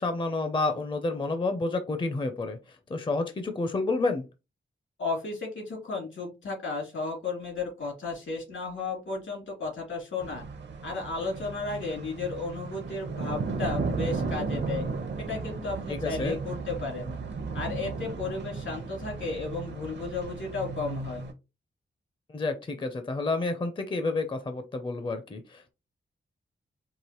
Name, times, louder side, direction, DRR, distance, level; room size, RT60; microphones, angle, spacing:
voice 1, 0.0-4.3 15.9-16.4 22.3-25.7, left 3 dB, 25° left, 8 dB, 0.5 m, -30 dB
voice 2, 5.0-10.4 10.8-14.8 15.2-17.1 17.5-21.2, left 3 dB, 80° left, -1 dB, 2.6 m, -34 dB
sound 1, 10.2-21.3, right 4 dB, 60° right, 0.7 m, -35 dB
4.7 x 2.8 x 2.9 m, 0.27 s
wide cardioid pair, 155°, 20 cm